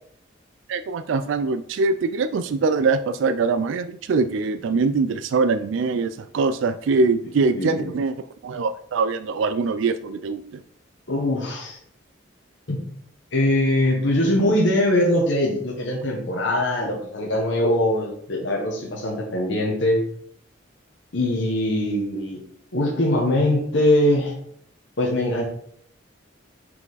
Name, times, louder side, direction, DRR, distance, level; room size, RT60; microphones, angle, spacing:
voice 1, 0.7-8.1 8.4-10.6, right 4 dB, 80° right, 11 dB, 0.4 m, -23 dB
voice 2, 7.5-7.9 11.1-11.8 12.7-12.8 13.3-20.0 21.1-22.4 22.7-24.3 25.0-25.4, left 1 dB, 70° left, -2 dB, 1.2 m, -22 dB
5.6 x 4.8 x 4.0 m, 0.66 s
head